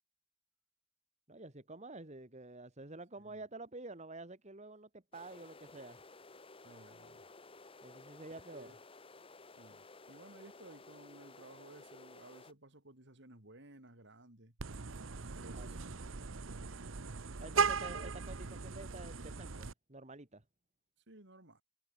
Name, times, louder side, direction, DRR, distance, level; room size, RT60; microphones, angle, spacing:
voice 1, 1.3-6.0 7.8-8.7 15.5-15.8 17.4-20.4, right 2 dB, 35° right, 2.1 m, -49 dB
sound 1, 5.1-12.5, left 3 dB, 30° left, 1.6 m, -56 dB
voice 2, 6.6-7.2 8.5-8.8 9.6-14.6 15.3-17.0 17.8-18.1 21.1-21.6, right 1 dB, 60° right, 3.9 m, -57 dB
Vehicle horn car horn honking, 14.6-19.7, right 5 dB, 80° right, 1.0 m, -38 dB
head